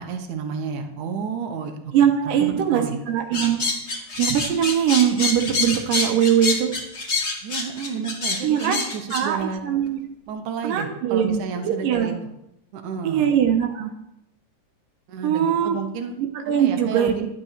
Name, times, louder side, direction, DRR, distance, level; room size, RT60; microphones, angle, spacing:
voice 1, 0.0-1.8 2.2-3.0 7.4-9.6 10.3-12.1 12.7-13.3 15.1-16.2 16.6-17.2, right 6 dB, 70° right, 5 dB, 2.4 m, -31 dB
voice 2, 1.9-3.6 3.9-6.7 8.4-8.8 9.1-10.0 10.6-11.4 11.6-12.2 13.0-13.9 15.2-15.8 16.2-17.1, right 9 dB, 85° right, 4 dB, 2.8 m, -21 dB
sound 1, 3.3-9.2, left 3 dB, 35° left, 1.1 m, -26 dB
11.5 x 6.2 x 8.1 m, 0.83 s
omnidirectional pair, 3.9 m